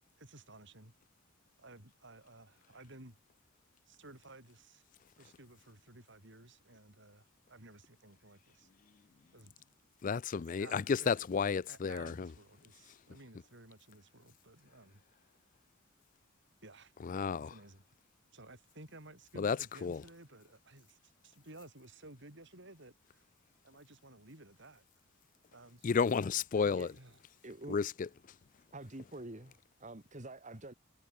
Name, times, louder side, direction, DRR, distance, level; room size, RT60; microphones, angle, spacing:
voice 1, 0.2-0.9 1.6-3.2 3.9-4.8 5.2-8.7 9.3-9.6 10.3-11.1 11.7-15.0 16.6-16.9 17.4-17.8 18.3-23.2 23.6-24.8 25.5-25.9 26.5-27.2, right 2 dB, 60° right, 6.3 m, -55 dB
voice 2, 10.0-12.3 17.0-17.5 19.4-19.6 19.8-20.0 25.8-26.9 27.7-28.1, left 5 dB, 40° left, 0.4 m, -32 dB
voice 3, 27.4-27.8 28.7-30.7, right 2 dB, 35° right, 2.2 m, -47 dB
head